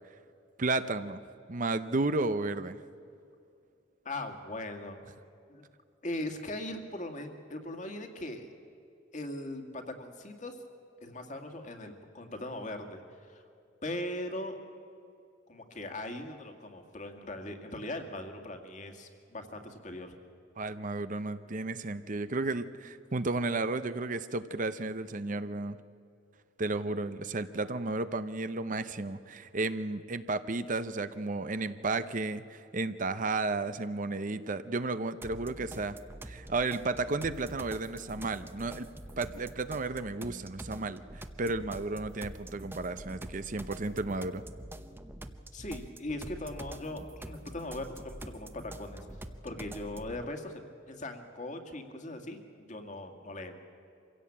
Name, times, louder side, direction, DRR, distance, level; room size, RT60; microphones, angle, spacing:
voice 1, 0.6-1.2 1.5-2.8 20.6-25.8 26.6-36.0 36.2-38.9 39.2-41.0 41.4-44.4, right 3 dB, 40° right, 12 dB, 0.7 m, -33 dB
voice 2, 4.0-5.0 5.5-5.7 6.0-8.5 9.1-10.6 11.0-13.4 13.8-14.6 15.5-20.1 45.5-49.1 49.4-50.6 50.9-53.6, left 1 dB, 40° left, 5 dB, 2.2 m, -40 dB
sound 1, 35.2-50.2, right 1 dB, 10° right, 0.8 m, -46 dB
25.0 x 16.5 x 8.7 m, 2.4 s
head